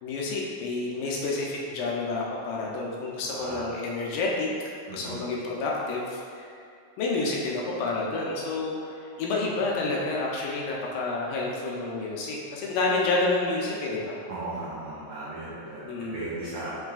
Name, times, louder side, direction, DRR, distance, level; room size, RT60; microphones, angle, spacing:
voice 1, 0.0-6.5 7.0-14.2 15.9-16.2, left 3 dB, 80° left, -3 dB, 2.1 m, -29 dB
voice 2, 3.2-3.7 4.9-5.2 14.3-15.8 16.1-16.7, right 2 dB, 85° right, -9 dB, 1.4 m, -36 dB
7.1 x 3.2 x 2.3 m, 2.3 s
omnidirectional pair, 3.9 m